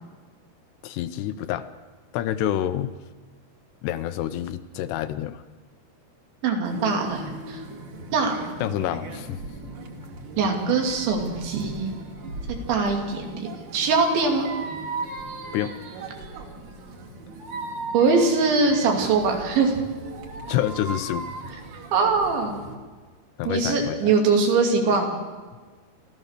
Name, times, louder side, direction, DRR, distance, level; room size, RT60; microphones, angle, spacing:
voice 1, 0.8-1.7 2.1-3.0 3.8-5.4 8.6-9.4 15.5-15.8 20.5-21.3 23.4-24.1, left 12 dB, 80° left, 11 dB, 2.6 m, -28 dB
voice 2, 6.4-7.6 8.1-8.4 10.4-11.9 12.7-13.5 13.7-14.5 17.9-19.8 21.9-22.6 23.5-25.1, right 4 dB, 85° right, 2 dB, 5.0 m, -22 dB
sound 1, 6.6-22.8, right 2 dB, 50° right, 3.4 m, -38 dB
28.5 x 14.5 x 6.7 m, 1.4 s
omnidirectional pair, 5.1 m